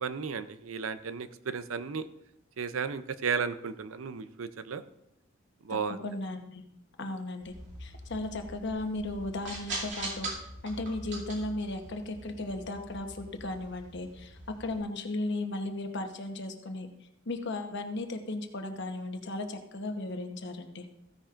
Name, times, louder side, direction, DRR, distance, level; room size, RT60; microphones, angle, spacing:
voice 1, 0.0-2.1 2.6-4.8 5.6-6.0, right 5 dB, 80° right, 12 dB, 0.6 m, -34 dB
voice 2, 5.7-6.6 7.0-7.5 7.8-16.9 17.3-20.9, left 2 dB, 60° left, 5 dB, 1.1 m, -36 dB
sound 1, 7.4-14.8, right 2 dB, 60° right, 2.6 m, -42 dB
15.0 x 10.0 x 2.5 m, 0.79 s
head